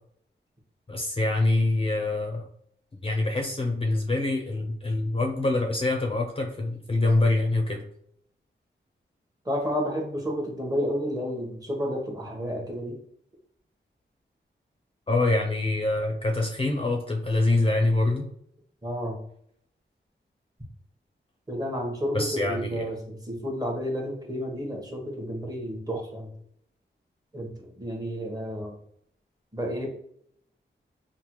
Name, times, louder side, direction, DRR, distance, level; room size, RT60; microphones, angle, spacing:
voice 1, 0.9-2.5 3.0-7.8 15.1-18.3 22.1-22.9, left 2 dB, 30° left, 1 dB, 0.5 m, -25 dB
voice 2, 9.4-13.0 18.8-19.2 21.5-26.3 27.3-28.8 29.5-29.9, equal, 20° right, 1 dB, 0.9 m, -31 dB
3.3 x 2.1 x 2.9 m, 0.70 s
cardioid pair, 55°, 20 cm